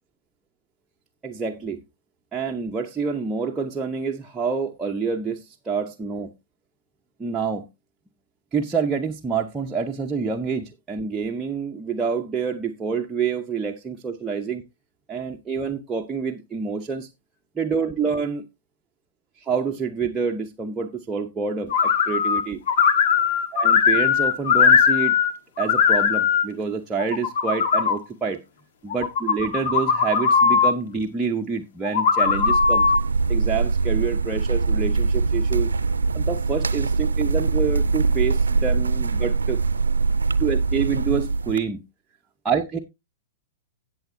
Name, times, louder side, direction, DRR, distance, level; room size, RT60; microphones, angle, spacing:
voice 1, 1.2-1.8 2.3-6.3 7.2-7.6 8.5-14.6 15.1-17.1 17.6-18.4 19.4-22.6 23.5-25.1 25.6-28.4 28.8-32.8 33.3-35.7 36.1-39.6 40.4-41.8 42.4-42.8, right 5 dB, 15° right, 0.9 m, -27 dB
sound 1, 21.7-22.4 22.7-25.3 25.6-26.4 27.0-28.0 28.9-30.7 31.8-33.0, left 6 dB, 55° left, 1.6 m, -19 dB
sound 2, 32.2-41.6, right 4 dB, 80° right, 0.6 m, -23 dB
17.0 x 7.0 x 2.6 m
figure-of-eight pair, 105°, 0 cm